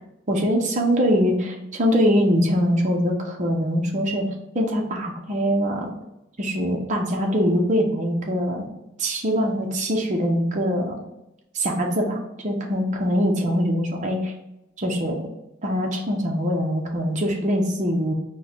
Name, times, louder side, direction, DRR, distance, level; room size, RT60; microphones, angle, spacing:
voice 1, 0.3-4.2 4.5-5.9 6.4-8.7 9.0-11.0 11.5-14.3 14.8-15.2 15.6-18.1, equal, 35° right, 0 dB, 0.7 m, -23 dB
4.5 x 2.2 x 4.2 m, 0.91 s
head